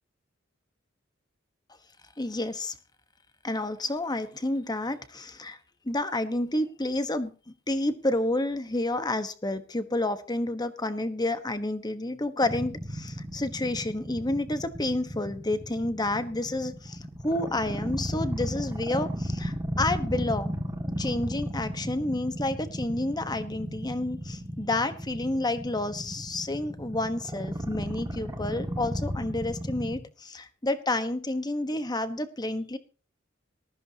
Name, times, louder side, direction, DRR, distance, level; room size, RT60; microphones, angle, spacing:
voice 1, 2.2-2.7 3.4-5.6 5.8-7.3 7.7-20.5 21.0-32.8, left 2 dB, 20° left, 10 dB, 1.2 m, -30 dB
sound 1, 12.4-30.0, equal, 20° right, 2.1 m, -34 dB
19.0 x 14.0 x 2.9 m, 0.34 s
head